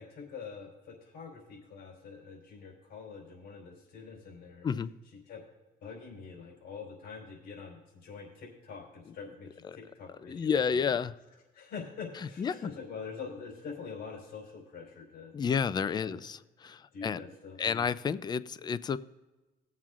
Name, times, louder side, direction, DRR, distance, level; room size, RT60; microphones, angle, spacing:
voice 1, 0.0-4.7 5.0-5.4 5.8-10.8 11.5-15.5 15.9-16.2 16.9-17.9, left 5 dB, 65° left, -1 dB, 3.9 m, -45 dB
voice 2, 10.2-11.1 12.4-12.7 15.3-17.2 17.6-19.0, left 6 dB, 25° left, 16 dB, 0.4 m, -30 dB
18.5 x 7.4 x 2.5 m, 1.1 s
cardioid pair, 110°, 17 cm